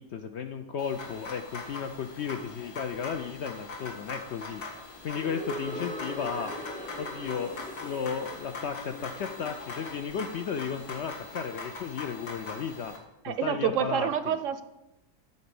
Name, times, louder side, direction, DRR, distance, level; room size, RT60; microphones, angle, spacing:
voice 1, 0.0-4.6 5.0-6.5 7.0-12.9 13.3-14.4, left 6 dB, 70° left, 7 dB, 0.6 m, -34 dB
sound 1, 0.8-13.0, left 3 dB, 90° left, 2.2 m, -42 dB
sound 2, 5.2-11.1, left 1 dB, 10° left, 0.5 m, -42 dB
voice 2, 13.2-14.6, right 9 dB, 70° right, 12 dB, 0.8 m, -28 dB
9.4 x 4.0 x 7.0 m, 0.93 s
omnidirectional pair, 1.6 m